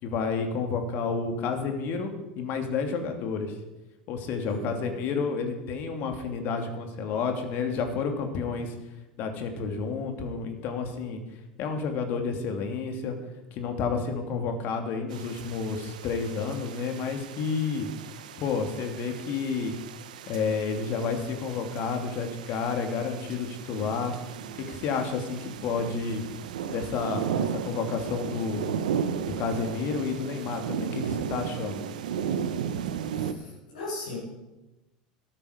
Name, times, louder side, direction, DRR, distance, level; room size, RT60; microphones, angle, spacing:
voice 1, 0.0-3.5 4.1-8.8 9.2-11.2 11.6-13.1 13.5-17.9 18.4-19.7 20.3-24.1 24.7-26.2 26.7-28.6 29.4-31.8, left 5 dB, 50° left, 5 dB, 2.7 m, -30 dB
voice 2, 4.4-4.9 33.2-34.2, left 2 dB, 80° left, -6 dB, 4.9 m, -38 dB
sound 1, 15.1-33.3, right 8 dB, 75° right, 0.9 m, -35 dB
13.5 x 12.0 x 5.2 m, 1.0 s
hypercardioid pair, 80°, 4 cm